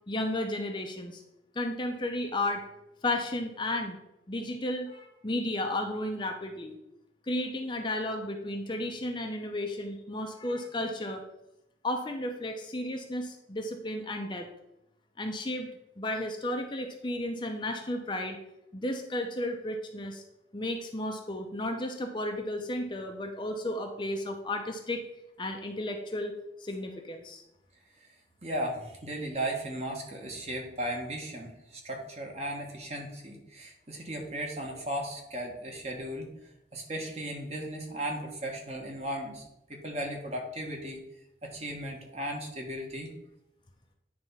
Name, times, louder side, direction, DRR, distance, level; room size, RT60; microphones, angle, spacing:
voice 1, 0.1-1.2 1.5-2.6 3.0-4.0 4.3-6.8 7.3-11.2 11.8-14.5 15.2-15.7 16.0-18.4 18.7-20.2 20.5-25.0 25.4-26.3 26.6-27.4, left 1 dB, 25° left, 3 dB, 0.6 m, -33 dB
voice 2, 28.4-36.3 36.7-39.4 39.7-41.0 41.4-43.1, right 1 dB, 35° right, 1 dB, 1.2 m, -36 dB
8.9 x 3.4 x 5.5 m, 0.87 s
head